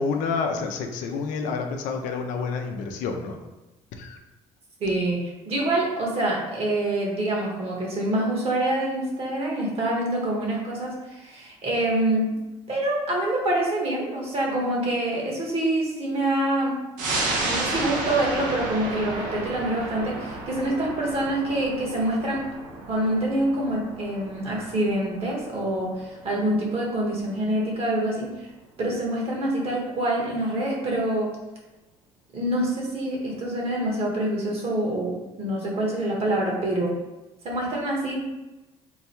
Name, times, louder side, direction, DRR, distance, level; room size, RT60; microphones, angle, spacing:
voice 1, 0.0-3.4 4.0-4.2, left 4 dB, 80° left, 4 dB, 0.5 m, -28 dB
voice 2, 4.8-12.3 12.7-16.8 17.4-22.4 22.9-28.5 28.8-31.3 32.3-37.0 37.4-38.3, right 1 dB, 50° right, -2 dB, 1.4 m, -26 dB
sound 1, 17.0-28.0 28.3-28.4, right 2 dB, 80° right, 0.9 m, -33 dB
3.9 x 2.3 x 4.3 m, 1.1 s
cardioid pair, 100°, 13 cm